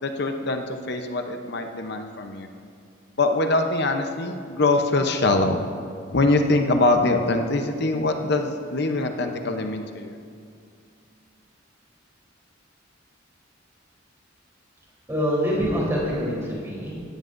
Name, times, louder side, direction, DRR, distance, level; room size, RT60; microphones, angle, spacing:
voice 1, 0.0-2.5 3.2-5.6 6.1-10.1, left 2 dB, 55° left, 5 dB, 0.7 m, -23 dB
voice 2, 15.1-17.1, equal, 15° right, -5 dB, 3.5 m, -25 dB
17.0 x 13.5 x 2.6 m, 2.3 s
head